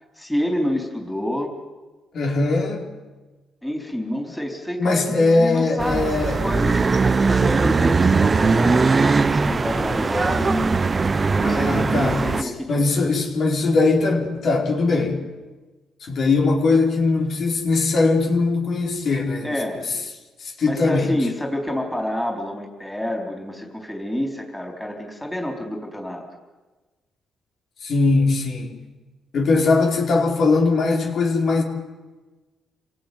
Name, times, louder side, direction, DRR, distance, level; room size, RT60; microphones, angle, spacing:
voice 1, 0.2-1.6 3.6-12.9 19.4-19.8 20.6-26.3, left 1 dB, 5° left, 1 dB, 4.3 m, -28 dB
voice 2, 2.1-2.8 4.8-6.4 11.4-15.2 16.0-19.5 20.4-21.1 27.8-28.8 29.3-31.6, left 3 dB, 60° left, 1 dB, 4.8 m, -20 dB
sound 1, 5.8-12.4, right 4 dB, 30° right, 0.9 m, -20 dB
26.5 x 17.5 x 9.5 m, 1.2 s
cardioid pair, 90°, 0 cm